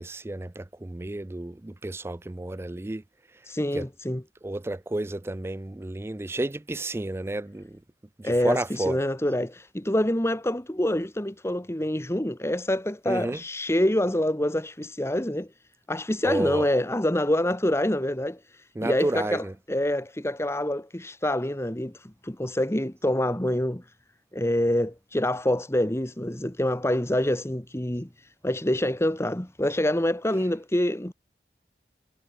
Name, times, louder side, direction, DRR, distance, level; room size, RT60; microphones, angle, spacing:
voice 1, 0.0-3.0 3.7-3.8 4.4-7.8 8.2-9.0 13.1-13.4 16.2-16.7 18.8-19.5, right 2 dB, 15° right, 0.4 m, -31 dB
voice 2, 3.4-4.2 8.2-15.5 15.9-23.8 24.3-31.1, left 1 dB, 15° left, 1.4 m, -26 dB
head